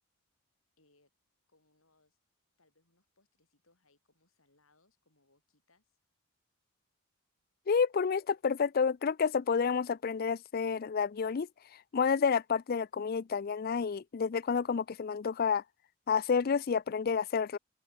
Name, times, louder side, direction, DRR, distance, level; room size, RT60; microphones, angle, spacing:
voice 1, 0.8-1.1 1.5-2.2 2.6-6.0, left 2 dB, 70° left, 7.5 m, -71 dB
voice 2, 7.7-11.5 11.9-15.6 16.1-17.6, left 6 dB, 45° left, 0.4 m, -29 dB
open air
head